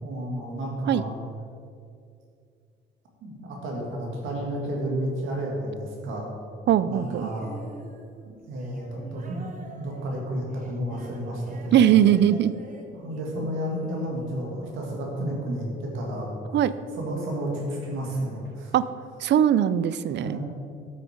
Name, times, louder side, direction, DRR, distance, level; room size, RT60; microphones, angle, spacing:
voice 1, 0.0-1.1 3.2-6.3 6.8-7.6 8.2-9.4 9.8-11.9 12.9-16.3 16.9-18.7 20.2-20.4, right 1 dB, 85° right, -1 dB, 2.1 m, -31 dB
voice 2, 6.7-7.3 11.7-12.5 16.5-16.7 18.7-18.8 19.2-20.4, right 10 dB, 65° right, 15 dB, 0.4 m, -20 dB
sound 1, 6.9-15.3 16.3-16.4, right 2 dB, 40° right, 1.3 m, -45 dB
9.0 x 6.6 x 5.1 m, 2.4 s
cardioid pair, 90°, 20 cm